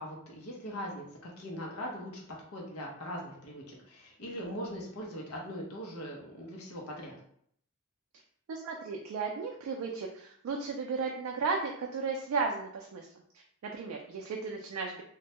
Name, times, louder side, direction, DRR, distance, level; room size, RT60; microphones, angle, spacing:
voice 1, 0.0-2.2 2.5-7.1, equal, 80° left, -2 dB, 0.6 m, -41 dB
voice 2, 8.5-13.1 13.6-15.0, right 4 dB, 75° right, 1 dB, 0.3 m, -34 dB
2.2 x 2.1 x 2.7 m, 0.65 s
head